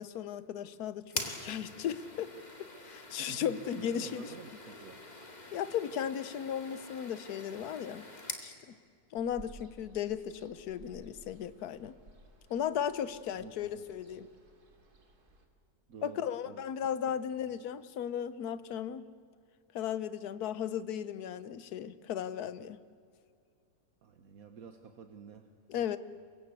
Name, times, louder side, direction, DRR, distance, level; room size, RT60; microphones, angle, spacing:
voice 1, 0.0-2.3 2.6-4.3 5.5-8.0 8.4-8.8 9.1-12.0 12.5-14.3 16.0-19.1 19.7-22.8 25.7-26.0, left 9 dB, 80° left, 15 dB, 1.4 m, -36 dB
sound 1, 1.1-8.5, left 2 dB, 30° left, 2.2 m, -44 dB
voice 2, 3.2-5.0 13.4-13.7 15.9-16.7 17.1-17.2 24.0-25.9, right 6 dB, 65° right, 7 dB, 1.5 m, -49 dB
Ocean, 9.1-15.5, right 2 dB, 85° right, 2.9 m, -57 dB
24.5 x 22.0 x 8.3 m, 2.3 s
omnidirectional pair, 1.6 m